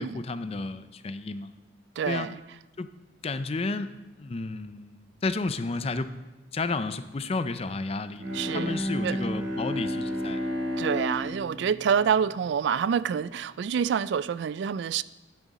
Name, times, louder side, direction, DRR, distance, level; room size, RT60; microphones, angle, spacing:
voice 1, 0.0-1.5 2.1-2.3 2.8-2.9 3.2-6.1 6.5-8.3 8.5-10.4, left 3 dB, 30° left, 12 dB, 0.5 m, -32 dB
voice 2, 2.0-2.4 8.3-9.1 10.8-15.0, right 7 dB, 65° right, 18 dB, 0.3 m, -27 dB
Bowed string instrument, 8.1-13.0, equal, 85° right, 3.8 m, -32 dB
11.5 x 10.0 x 4.1 m, 1.1 s
head